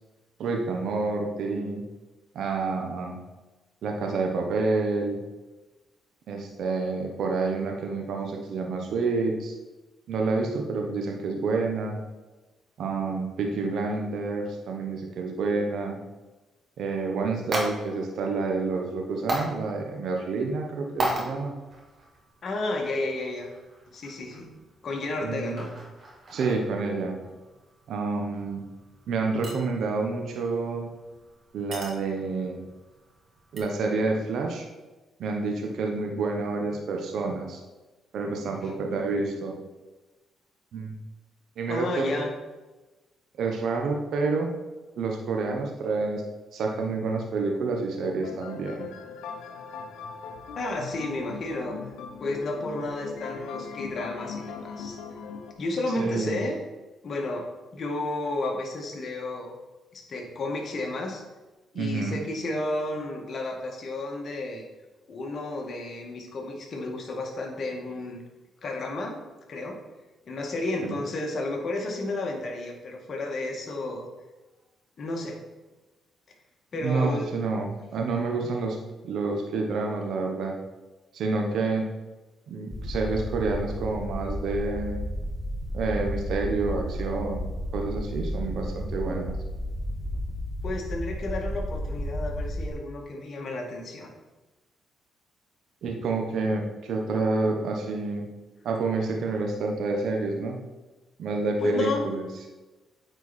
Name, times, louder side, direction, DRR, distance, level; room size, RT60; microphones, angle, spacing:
voice 1, 0.4-1.8 2.3-3.2 3.8-5.2 6.3-9.5 10.1-12.0 12.8-16.0 16.8-21.6 25.2-25.6 26.3-27.2 27.9-28.6 29.1-30.9 31.5-32.7 33.5-34.7 35.2-37.6 38.1-39.6 40.7-41.0 41.6-42.2 43.4-44.5 45.0-46.2 46.5-48.9 56.0-56.4 61.7-62.2 70.9-71.0 76.8-78.8 79.0-80.6 81.1-81.9 82.5-85.0 85.7-87.5 87.7-89.4 95.8-98.3 98.6-100.6 101.2-102.3, right 3 dB, 70° right, 2 dB, 1.1 m, -28 dB
sound 1, 16.9-33.6, right 1 dB, 55° right, 1.9 m, -39 dB
voice 2, 22.4-23.5 23.9-24.5 24.8-25.7 38.6-38.7 41.7-42.3 50.6-51.8 52.2-55.0 55.6-56.5 57.0-57.5 57.7-59.5 59.9-61.2 61.7-64.6 65.1-68.2 68.6-69.2 69.5-69.8 70.3-74.1 75.0-75.4 76.7-77.3 90.6-94.1 101.6-102.1, left 2 dB, 55° left, 0 dB, 1.8 m, -32 dB
sound 2, 48.0-55.5, left 5 dB, 85° left, 0.8 m, -40 dB
sound 3, 82.7-92.7, equal, ahead, 1.4 m, -32 dB
9.0 x 4.6 x 4.2 m, 1.2 s
supercardioid pair, 70°, 0 cm